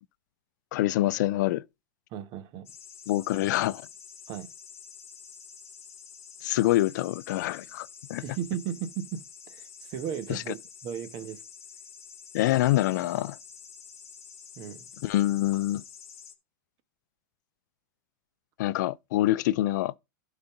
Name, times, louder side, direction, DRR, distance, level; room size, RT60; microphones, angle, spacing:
voice 1, 0.7-1.6 3.1-3.8 6.4-8.2 10.3-10.4 12.3-13.4 15.0-15.8 18.6-19.9, left 16 dB, 65° left, 0.4 m, -26 dB
voice 2, 2.1-2.7 4.3-4.5 8.2-9.2 9.5-11.4 14.6-14.9, right 9 dB, 45° right, 1.3 m, -36 dB
sound 1, 2.7-16.3, left 7 dB, 25° left, 1.7 m, -48 dB
11.5 x 4.0 x 5.8 m
hypercardioid pair, 120°, 11 cm